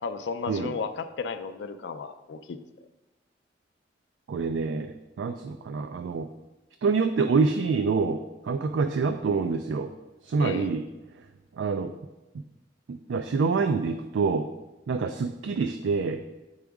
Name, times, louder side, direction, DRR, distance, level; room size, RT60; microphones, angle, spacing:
voice 1, 0.0-2.6 10.4-10.7, left 5 dB, 70° left, 9 dB, 0.4 m, -34 dB
voice 2, 4.3-6.3 6.8-8.2 8.4-9.9 10.2-10.8 11.6-11.9 12.9-14.5 14.9-16.2, right 4 dB, 85° right, 8 dB, 0.4 m, -26 dB
7.9 x 4.9 x 3.5 m, 1.1 s
head